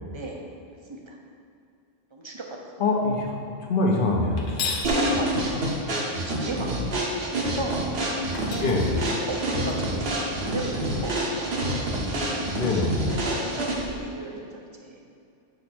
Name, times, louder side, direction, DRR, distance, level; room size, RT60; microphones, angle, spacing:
voice 1, 2.1-2.7 4.8-5.5 6.1-7.0 7.4-7.8 8.4-12.1 13.2-15.0, right 2 dB, 30° right, 0 dB, 0.6 m, -35 dB
voice 2, 2.8-4.8 8.6-8.9 12.6-13.0, left 3 dB, 50° left, 0 dB, 1.0 m, -24 dB
sound 1, 4.4-4.9 7.8-7.9 8.3-9.7, left 4 dB, 85° left, 1.2 m, -34 dB
sound 2, 4.8-14.0, right 1 dB, 55° right, 1.1 m, -27 dB
7.6 x 3.2 x 6.1 m, 2.4 s
omnidirectional pair, 1.3 m